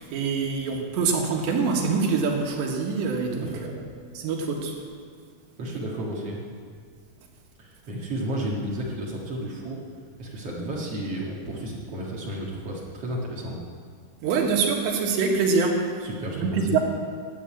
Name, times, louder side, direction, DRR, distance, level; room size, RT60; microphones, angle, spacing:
voice 1, 0.0-3.7 4.2-4.7 14.2-15.9 16.3-16.8, right 4 dB, 85° right, 1 dB, 3.8 m, -25 dB
voice 2, 5.6-6.4 7.6-9.8 10.2-13.6 16.0-16.8, right 1 dB, 45° right, -3 dB, 2.3 m, -32 dB
12.5 x 8.7 x 8.8 m, 2.1 s
omnidirectional pair, 4.9 m